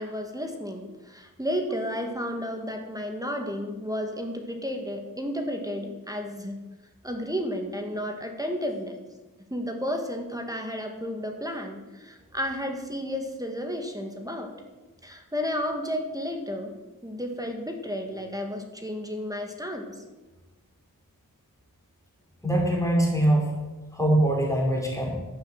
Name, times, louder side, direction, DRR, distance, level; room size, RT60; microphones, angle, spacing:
voice 1, 0.0-6.6 7.0-9.0 9.5-14.5 15.0-16.7 17.0-20.0, equal, 10° right, 3 dB, 2.2 m, -32 dB
voice 2, 22.4-23.5 23.9-25.1, right 1 dB, 10° left, -2 dB, 5.1 m, -22 dB
12.0 x 9.0 x 7.8 m, 1.2 s
cardioid pair, 60°, 36 cm